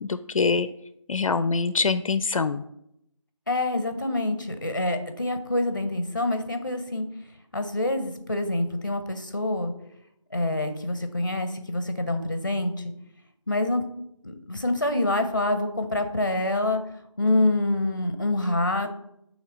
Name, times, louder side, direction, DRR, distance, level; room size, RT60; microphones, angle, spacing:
voice 1, 0.0-0.7 1.1-2.6, left 4 dB, 80° left, 13 dB, 0.4 m, -24 dB
voice 2, 3.5-7.1 7.5-9.7 10.3-12.7 13.5-13.9 14.2-16.8 17.2-18.9, left 2 dB, 40° left, 8 dB, 0.6 m, -26 dB
8.3 x 3.2 x 3.8 m, 0.78 s
figure-of-eight pair, 180°, 17 cm